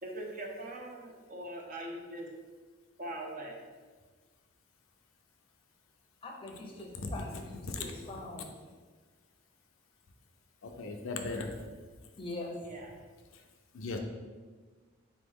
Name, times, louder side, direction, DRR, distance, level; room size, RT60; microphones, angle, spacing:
voice 1, 0.0-2.3 3.0-3.5 12.6-12.9, right 1 dB, 40° right, 1 dB, 0.6 m, -41 dB
voice 2, 6.2-8.5 12.2-12.5, left 2 dB, 25° left, 0 dB, 0.6 m, -43 dB
voice 3, 7.6-8.2 10.6-11.6 13.7-14.0, left 3 dB, 70° left, 4 dB, 0.5 m, -38 dB
4.1 x 3.1 x 3.6 m, 1.4 s
head